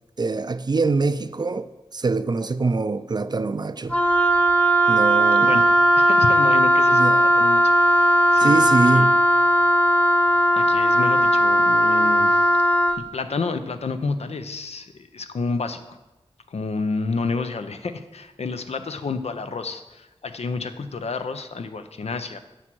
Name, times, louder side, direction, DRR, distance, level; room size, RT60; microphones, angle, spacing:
voice 1, 0.2-4.0 4.9-5.6 6.9-7.3 8.4-9.1, right 3 dB, 40° right, 0.4 m, -24 dB
Wind instrument woodwind instrument, 3.9-13.0, equal, 10° left, 0.6 m, -17 dB
voice 2, 6.0-9.1 9.5-9.6 10.5-12.5 13.0-16.0 16.5-22.4, left 4 dB, 85° left, 0.6 m, -30 dB
9.8 x 6.1 x 4.6 m
wide cardioid pair, 70°, 11 cm